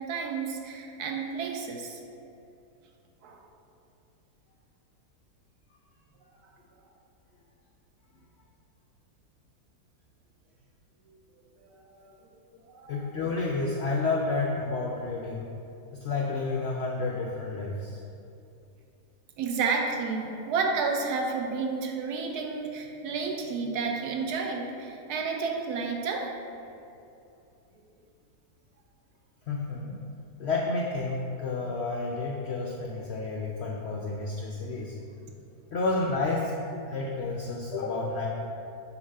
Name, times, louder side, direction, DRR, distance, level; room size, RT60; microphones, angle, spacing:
voice 1, 0.0-2.0 3.2-3.4 11.6-12.1 12.7-13.1 19.4-26.3 26.6-26.8, right 4 dB, 75° right, 2 dB, 1.1 m, -31 dB
voice 2, 12.9-15.5 16.0-18.0 29.5-30.0 30.4-34.9 35.7-36.5 36.9-38.3, left 3 dB, 75° left, -2 dB, 0.6 m, -30 dB
6.8 x 2.6 x 5.4 m, 2.7 s
omnidirectional pair, 1.7 m